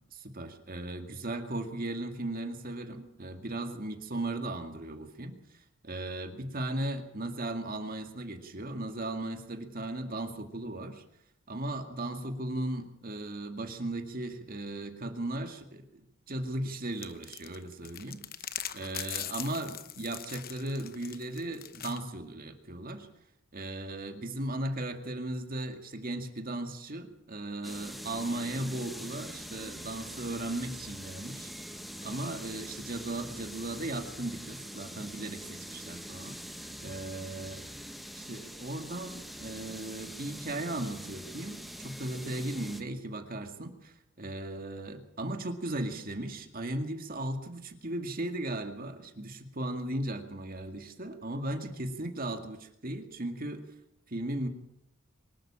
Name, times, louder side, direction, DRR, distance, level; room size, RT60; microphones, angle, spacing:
voice 1, 0.1-5.4 5.8-11.0 11.5-18.2 18.7-23.1 23.5-31.5 32.0-36.4 36.8-37.7 38.1-53.6 54.1-54.5, right 1 dB, 45° right, 6 dB, 2.2 m, -37 dB
sound 1, 17.0-22.0, left 11 dB, 50° left, 1.0 m, -41 dB
sound 2, 27.6-42.8, equal, ahead, 1.2 m, -44 dB
24.0 x 12.5 x 8.8 m, 0.78 s
head